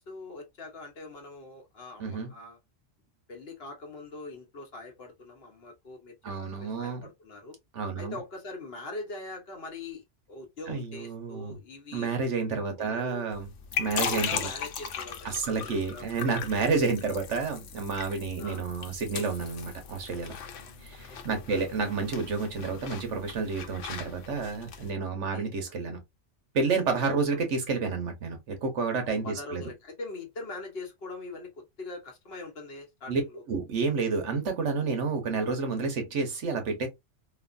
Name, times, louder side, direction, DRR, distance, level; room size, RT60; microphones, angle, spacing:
voice 1, 0.0-2.6 3.3-6.1 6.4-7.6 8.0-12.1 12.5-13.3 13.9-16.1 18.4-18.6 20.6-20.7 21.1-21.6 25.3-25.5 27.0-27.2 29.0-33.4, left 2 dB, 55° left, 1.1 m, -42 dB
voice 2, 2.0-2.3 6.2-7.1 7.7-8.2 10.7-11.6 11.9-13.5 13.8-14.5 15.2-20.3 20.8-26.0 26.5-29.6 33.1-33.2 33.5-36.9, right 4 dB, 75° right, 1.2 m, -30 dB
sound 1, 13.3-24.9, left 7 dB, 80° left, 1.0 m, -38 dB
3.1 x 2.3 x 2.4 m
omnidirectional pair, 1.3 m